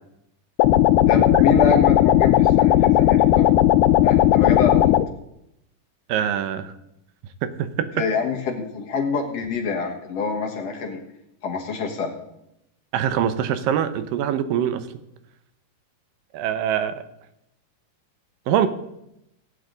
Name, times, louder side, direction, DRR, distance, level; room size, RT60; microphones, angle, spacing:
sound 1, 0.6-5.1, left 13 dB, 90° left, 2.3 m, -16 dB
voice 1, 1.1-3.5 4.0-4.9 8.0-11.0 11.4-12.1, left 4 dB, 55° left, 1 dB, 2.3 m, -26 dB
voice 2, 6.1-6.7 7.4-7.9 12.9-14.9 16.3-17.0 18.5-18.7, right 9 dB, 85° right, 11 dB, 2.6 m, -23 dB
17.5 x 9.7 x 3.9 m, 0.82 s
omnidirectional pair, 3.9 m